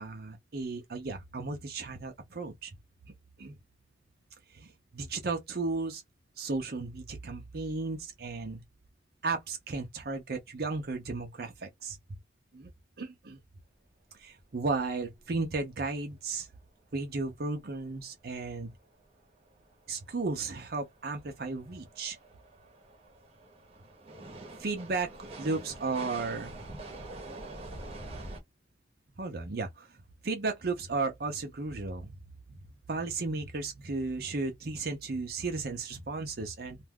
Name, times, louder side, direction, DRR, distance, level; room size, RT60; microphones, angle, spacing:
voice 1, 0.0-2.7 3.4-3.6 4.5-4.7 4.9-6.0 6.4-8.6 9.2-12.0 12.5-12.7 13.0-13.4 14.2-16.5 16.9-18.7 19.9-22.2 24.6-26.5 29.2-29.9 30.2-32.2 32.9-36.8, right 3 dB, 55° right, 0.6 m, -34 dB
sound 1, 14.1-14.2 14.4-14.5 14.8-15.0 15.4-15.5 18.6-18.7 19.2-28.4, right 2 dB, 35° right, 0.9 m, -46 dB
2.5 x 2.2 x 3.5 m
head